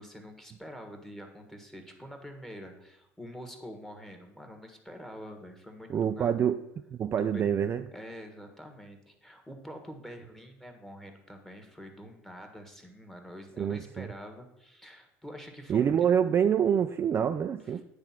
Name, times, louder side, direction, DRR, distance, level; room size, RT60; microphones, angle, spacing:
voice 1, 0.0-6.4 7.2-7.5 7.9-15.9, equal, 5° left, 1.4 m, -46 dB
voice 2, 5.9-6.6 6.9-7.8 13.6-14.1 15.7-17.9, right 8 dB, 35° right, 0.3 m, -26 dB
8.9 x 3.4 x 5.8 m
supercardioid pair, 85°, 7 cm